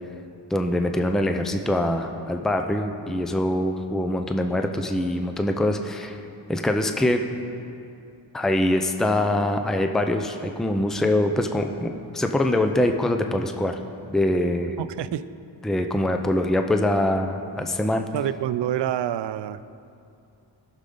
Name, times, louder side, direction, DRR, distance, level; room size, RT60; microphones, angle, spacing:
voice 1, 0.5-6.2 6.5-7.2 8.3-13.8 14.1-14.8 15.6-18.0, left 1 dB, ahead, 5 dB, 0.6 m, -24 dB
voice 2, 14.8-15.3 18.1-19.7, right 11 dB, 75° right, 14 dB, 0.5 m, -27 dB
18.0 x 6.6 x 3.9 m, 2.5 s
cardioid pair, 90°, 43 cm